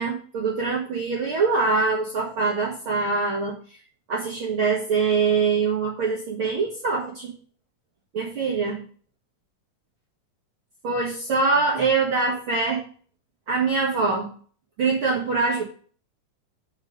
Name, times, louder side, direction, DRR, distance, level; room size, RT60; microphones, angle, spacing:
voice 1, 0.0-3.6 4.1-7.3 8.1-8.8 10.8-12.8 13.5-14.3 14.8-15.6, right 4 dB, 50° right, -2 dB, 1.8 m, -23 dB
8.9 x 4.9 x 5.3 m, 0.42 s
omnidirectional pair, 3.6 m